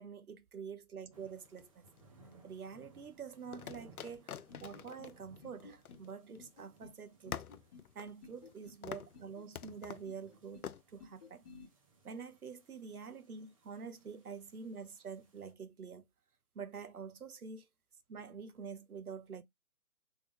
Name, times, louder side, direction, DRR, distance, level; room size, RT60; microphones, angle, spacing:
voice 1, 0.0-1.8 2.4-4.3 4.6-7.4 7.9-11.4 12.0-16.1 16.5-17.7 18.1-19.4, right 6 dB, 80° right, 0.8 m, -47 dB
sound 1, 1.1-15.5, right 3 dB, 25° right, 0.6 m, -65 dB
sound 2, 1.4-2.3 3.5-6.5 6.8-6.9 7.3-8.6 8.8-9.2 9.5-10.1 10.6-10.8, left 9 dB, 75° left, 0.5 m, -47 dB
sound 3, 4.5-5.1 5.4-6.0 6.4-7.0 7.3-7.9 8.2-8.8 9.1-9.8 10.1-10.7 11.0-11.7, left 4 dB, 25° left, 1.0 m, -56 dB
3.6 x 2.2 x 3.5 m
figure-of-eight pair, 140°, 44 cm